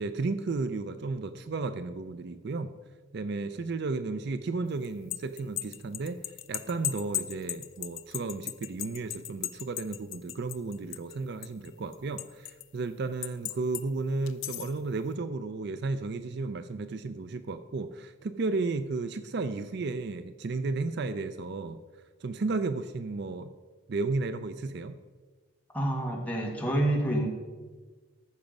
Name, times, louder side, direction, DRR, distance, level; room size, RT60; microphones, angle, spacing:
voice 1, 0.0-2.7 3.1-6.2 6.5-21.8 22.2-23.5 23.9-25.0, right 3 dB, 50° right, 11 dB, 0.4 m, -33 dB
sound 1, 4.8-11.2 11.4-12.6 13.2-13.8 14.3-14.8, left 13 dB, 65° left, 0.5 m, -36 dB
voice 2, 25.7-27.3, right 1 dB, 5° left, -1 dB, 1.6 m, -28 dB
14.0 x 5.9 x 5.2 m, 1.4 s
head